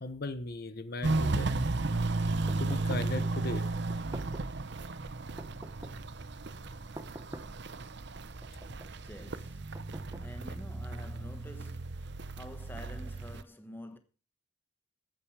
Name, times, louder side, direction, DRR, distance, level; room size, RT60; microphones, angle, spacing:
voice 1, 0.0-1.5 2.6-3.6, left 2 dB, 50° left, 1.0 m, -37 dB
Walk footsteps, 1.0-13.4, right 2 dB, 55° right, 0.8 m, -34 dB
sound 1, 2.5-3.2 3.9-4.6 5.4-6.1 7.0-7.7 8.4-9.0 9.7-10.6, right 1 dB, 20° right, 0.8 m, -47 dB
voice 2, 9.0-9.8 10.2-14.0, left 1 dB, 10° left, 1.2 m, -48 dB
14.0 x 8.9 x 4.8 m
head